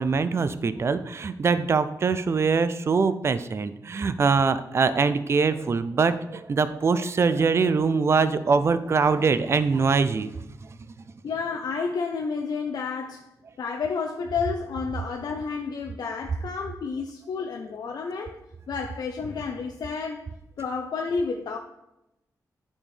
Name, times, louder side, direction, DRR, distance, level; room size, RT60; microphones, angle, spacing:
voice 1, 0.0-10.3, right 5 dB, 40° right, 0.4 m, -23 dB
voice 2, 11.2-13.3 13.6-18.4 18.7-20.3 20.6-21.6, left 5 dB, 80° left, 0.5 m, -30 dB
8.8 x 4.3 x 3.3 m
wide cardioid pair, 110°, 7 cm